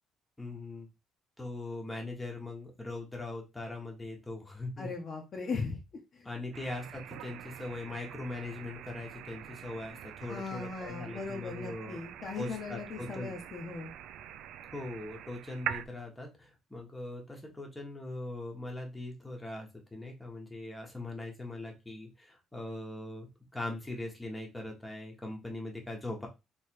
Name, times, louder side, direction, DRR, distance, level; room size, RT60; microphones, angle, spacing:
voice 1, 0.4-0.9 1.4-4.9 6.2-12.0 12.3-13.3 14.7-23.3 23.5-26.3, left 2 dB, 10° left, 0 dB, 1.2 m, -41 dB
voice 2, 4.8-5.8 6.1-6.3 10.3-13.9, left 4 dB, 35° left, 1 dB, 1.0 m, -38 dB
sound 1, 6.5-15.9, right 10 dB, 75° right, 0.4 m, -44 dB
3.3 x 3.2 x 4.5 m, 0.25 s
cardioid pair, 135°, 0 cm